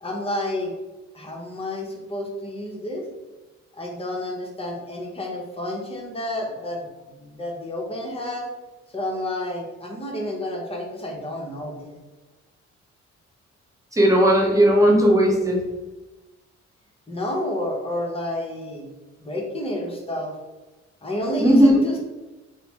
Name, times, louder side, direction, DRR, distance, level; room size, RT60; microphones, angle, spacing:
voice 1, 0.0-0.7 1.1-3.0 3.7-8.5 8.9-12.0 17.1-18.9 19.2-20.3 21.0-22.0, left 1 dB, 20° left, -1 dB, 0.8 m, -30 dB
voice 2, 13.9-15.6 21.4-21.7, equal, 10° right, -1 dB, 0.8 m, -16 dB
3.1 x 2.0 x 2.9 m, 1.1 s
supercardioid pair, 65°, 29 cm